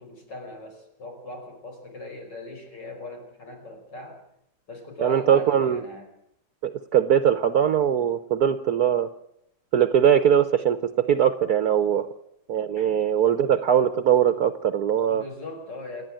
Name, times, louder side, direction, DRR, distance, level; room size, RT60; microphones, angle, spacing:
voice 1, 0.0-4.2 4.7-6.1 11.9-12.1 12.8-13.0 15.0-16.0, left 2 dB, 70° left, 2 dB, 5.9 m, -40 dB
voice 2, 5.0-5.8 6.6-9.1 9.7-10.8 11.1-12.1 12.5-15.2, right 9 dB, 60° right, 11 dB, 1.4 m, -21 dB
28.0 x 10.0 x 9.0 m, 0.76 s
omnidirectional pair, 2.0 m